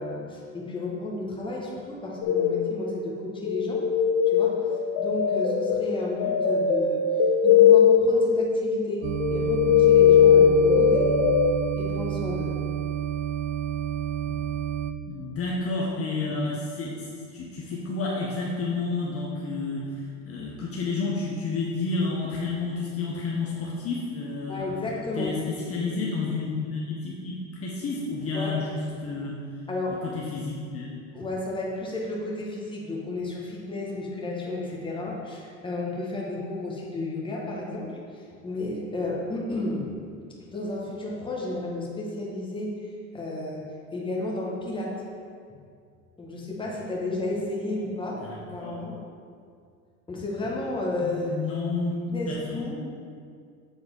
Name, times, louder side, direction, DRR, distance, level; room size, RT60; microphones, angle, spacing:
voice 1, 0.0-3.8 4.3-4.5 5.0-7.0 7.4-11.3 11.8-12.5 14.3-14.4 24.5-25.3 28.3-28.5 29.7-30.0 31.1-39.9 40.2-42.7 43.1-43.6 43.9-44.9 46.2-49.0 50.1-51.3 52.1-52.8, left 2 dB, 15° left, -4 dB, 1.5 m, -32 dB
sound 1, 2.2-3.0 3.5-11.5, left 7 dB, 55° left, 0.8 m, -20 dB
sound 2, 9.0-14.9, right 10 dB, 65° right, 0.5 m, -30 dB
voice 2, 15.1-19.8 20.2-24.6 25.1-25.4 25.7-29.3 30.0-30.9 48.2-48.7 51.0-51.9 52.3-52.6, left 3 dB, 40° left, -4 dB, 1.1 m, -30 dB
7.3 x 3.8 x 5.4 m, 2.2 s
supercardioid pair, 105°, 37 cm